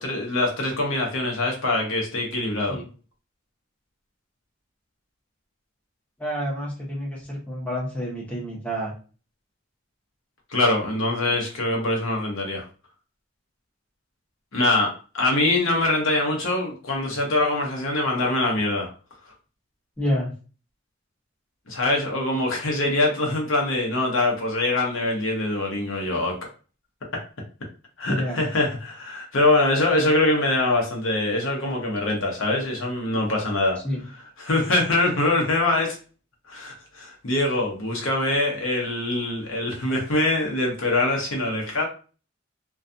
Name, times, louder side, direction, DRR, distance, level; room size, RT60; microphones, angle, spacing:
voice 1, 0.0-2.8 10.5-12.7 14.5-18.9 21.7-26.4 27.1-27.2 28.0-33.8 34.4-36.0 36.5-41.9, left 2 dB, 85° left, 0 dB, 0.8 m, -23 dB
voice 2, 6.2-8.9 20.0-20.3 28.1-28.4 33.8-34.0, equal, 5° left, -5 dB, 0.8 m, -28 dB
2.3 x 2.3 x 2.6 m, 0.37 s
head